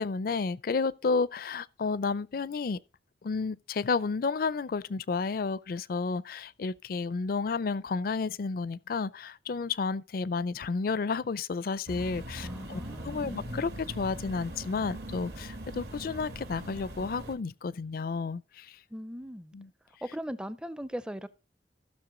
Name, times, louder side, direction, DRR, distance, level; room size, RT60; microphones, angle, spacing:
voice 1, 0.0-2.8 3.2-18.8 19.5-19.7, left 4 dB, 50° left, 0.4 m, -31 dB
sound 1, 11.9-17.3, right 1 dB, 60° right, 1.5 m, -41 dB
voice 2, 12.4-13.7 18.9-19.5 20.0-21.3, equal, 5° right, 0.4 m, -39 dB
14.5 x 6.5 x 3.8 m
head